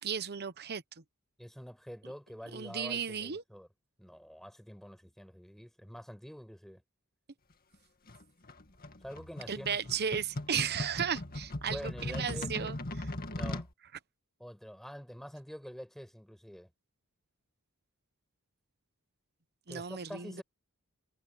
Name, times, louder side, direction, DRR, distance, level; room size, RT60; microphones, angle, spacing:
voice 1, 0.0-1.0 2.5-3.4 9.5-13.1 19.7-20.4, right 7 dB, 45° right, 0.9 m, -35 dB
voice 2, 1.4-3.7 4.0-6.8 9.0-10.2 11.6-12.7 13.3-13.7 14.4-16.7 19.7-20.4, equal, ahead, 5.2 m, -46 dB
sound 1, 8.1-13.7, left 1 dB, 40° left, 2.1 m, -39 dB
head